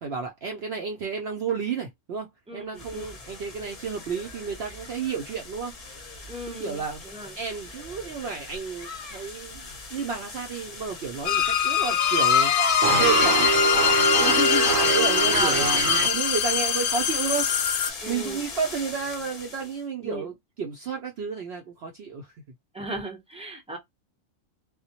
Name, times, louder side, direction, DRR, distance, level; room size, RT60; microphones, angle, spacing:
voice 1, 0.0-5.7 6.4-7.0 7.4-12.5 13.0-13.5 14.8-17.5 18.1-22.3, right 6 dB, 65° right, 0.7 m, -31 dB
voice 2, 2.5-3.1 6.3-7.4 14.2-14.7 15.3-15.6 18.0-18.4 20.0-20.3 22.7-23.8, left 1 dB, 5° right, 0.5 m, -34 dB
sound 1, 2.8-19.8, left 4 dB, 35° left, 0.7 m, -34 dB
sound 2, 11.3-17.9, left 7 dB, 65° left, 0.8 m, -23 dB
sound 3, 12.8-16.1, right 5 dB, 85° right, 1.0 m, -24 dB
2.2 x 2.1 x 2.7 m
omnidirectional pair, 1.4 m